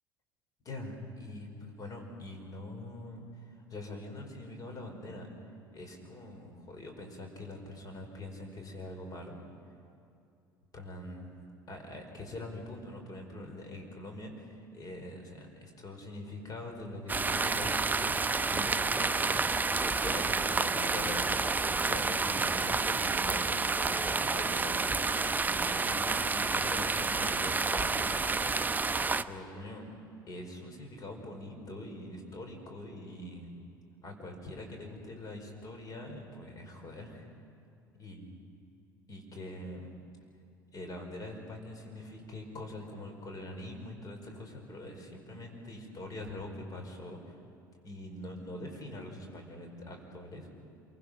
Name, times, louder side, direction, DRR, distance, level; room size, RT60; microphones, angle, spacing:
voice 1, 0.6-5.3 5.7-9.4 10.7-11.4 11.7-28.4 29.2-29.9 30.3-33.5 34.0-37.3 38.0-38.2 39.1-39.9 40.7-47.4 47.8-50.5, left 1 dB, 35° left, 3 dB, 5.1 m, -43 dB
sound 1, 17.1-29.2, right 4 dB, 15° right, 0.7 m, -29 dB
28.0 x 23.5 x 6.0 m, 2.6 s
figure-of-eight pair, 60°, 11 cm